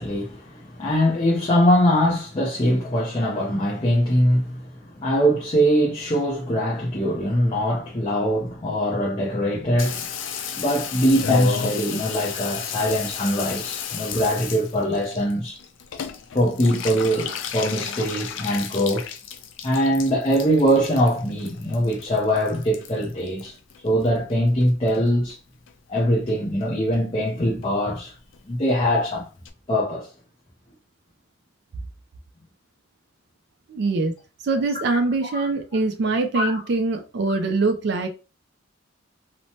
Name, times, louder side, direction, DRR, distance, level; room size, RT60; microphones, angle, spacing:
voice 1, 0.0-10.0 10.5-15.6 16.3-19.1 19.6-23.6 23.8-25.4 25.9-28.1 28.5-29.3 29.7-30.1 35.3-35.5 36.3-36.6, equal, 30° left, 0.6 m, -22 dB
Water tap faucet / Bathtub (filling or washing), 9.8-24.3 24.6-25.3 25.7-25.8 26.0-26.1 26.3-26.7 26.9-27.0 27.3-27.4 27.6-27.7 28.0-28.1 28.3-28.4 28.7-28.8 29.1-29.2 29.5-29.6, left 7 dB, 70° left, 0.4 m, -33 dB
voice 2, 33.7-34.1 34.4-38.1, right 3 dB, 60° right, 0.4 m, -23 dB
3.0 x 2.1 x 2.7 m
head